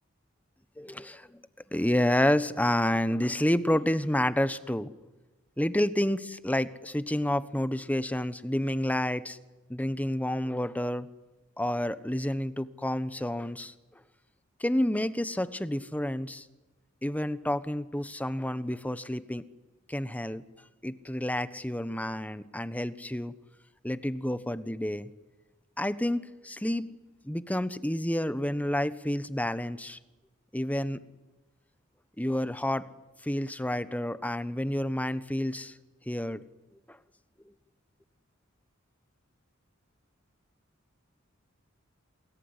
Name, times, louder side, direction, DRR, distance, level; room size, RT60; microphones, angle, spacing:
voice 1, 0.8-1.4 1.7-4.9 5.6-9.4 9.7-11.1 11.6-13.7 14.6-16.5 17.0-19.4 19.9-20.4 20.8-23.3 23.8-25.1 25.8-26.9 27.2-30.0 30.5-31.0 32.2-32.9 33.2-35.7 36.1-36.4 36.9-37.0, left 1 dB, 10° left, 14 dB, 1.1 m, -29 dB
28.0 x 21.5 x 9.8 m, 1.1 s
head